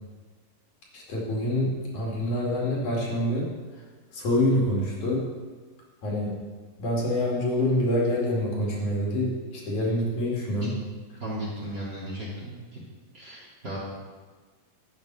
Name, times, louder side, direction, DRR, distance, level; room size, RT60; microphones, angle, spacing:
voice 1, 0.9-3.5 4.1-5.3 6.0-6.4 6.8-10.8, left 1 dB, 55° left, -4 dB, 3.5 m, -26 dB
voice 2, 11.2-12.8 13.1-13.8, right 1 dB, 30° right, -5 dB, 2.6 m, -35 dB
12.0 x 9.0 x 5.4 m, 1.4 s
omnidirectional pair, 4.3 m